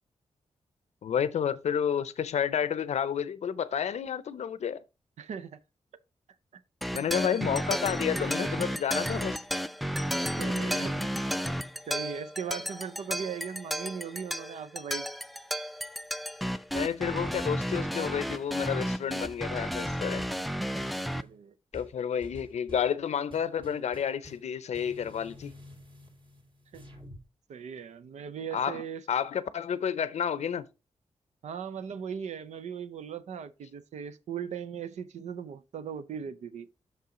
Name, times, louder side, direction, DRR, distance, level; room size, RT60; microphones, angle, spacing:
voice 1, 1.0-4.8 6.9-9.4 16.7-20.3 21.7-25.5 28.5-28.8 29.1-30.6, left 8 dB, 75° left, 0.6 m, -30 dB
voice 2, 5.2-5.6 8.4-8.5 10.4-11.1 11.9-15.1 21.1-21.5 26.7-26.8 27.5-29.0 31.4-36.7, right 7 dB, 80° right, 0.6 m, -38 dB
sound 1, 6.8-21.2, equal, ahead, 0.4 m, -32 dB
sound 2, 16.7-18.0 18.3-18.9 19.2-20.4 20.8-21.4 21.7-22.9 23.3-24.5 24.7-27.2, equal, 45° right, 2.7 m, -49 dB
6.1 x 5.7 x 3.8 m
cardioid pair, 60°, 12 cm